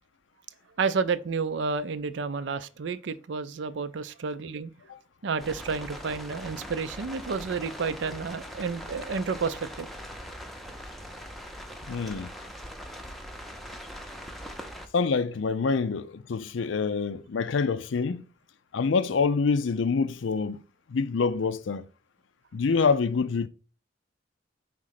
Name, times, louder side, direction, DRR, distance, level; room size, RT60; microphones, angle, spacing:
voice 1, 0.8-4.7 5.2-9.9, right 5 dB, 70° right, 0.5 m, -30 dB
sound 1, 5.4-14.9, equal, ahead, 0.6 m, -41 dB
voice 2, 11.9-12.3 14.9-18.3 18.7-20.6 20.9-21.8 22.5-23.5, left 5 dB, 80° left, 0.5 m, -26 dB
5.1 x 3.7 x 5.7 m
head